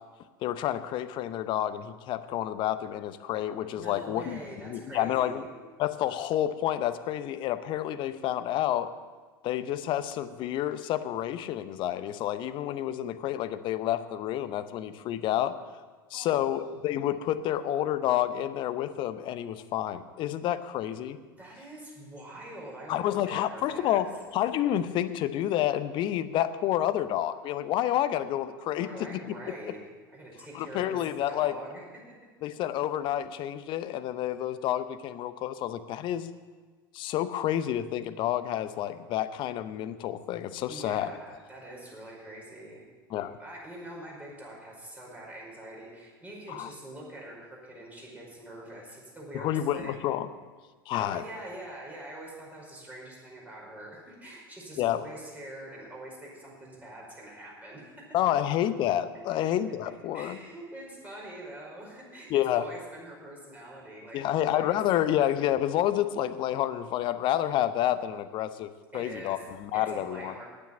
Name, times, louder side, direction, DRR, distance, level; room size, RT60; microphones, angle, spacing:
voice 1, 0.4-5.4 5.8-8.9 9.4-15.5 16.1-21.2 22.9-24.1 24.3-29.2 30.5-31.5 32.4-36.3 36.9-41.1 43.1-43.4 46.5-46.7 49.3-50.3 50.9-51.2 54.8-55.0 58.1-60.4 62.3-62.6 64.1-70.3, left 12 dB, 45° left, 13 dB, 0.7 m, -29 dB
voice 2, 3.7-5.5 16.1-16.5 21.3-24.1 28.8-29.8 30.1-32.2 40.7-42.9 43.2-50.1 51.0-58.1 60.1-64.8 68.9-69.4 69.7-70.4, right 1 dB, 15° right, -3 dB, 5.1 m, -44 dB
10.0 x 9.1 x 8.5 m, 1.4 s
figure-of-eight pair, 80°, 12 cm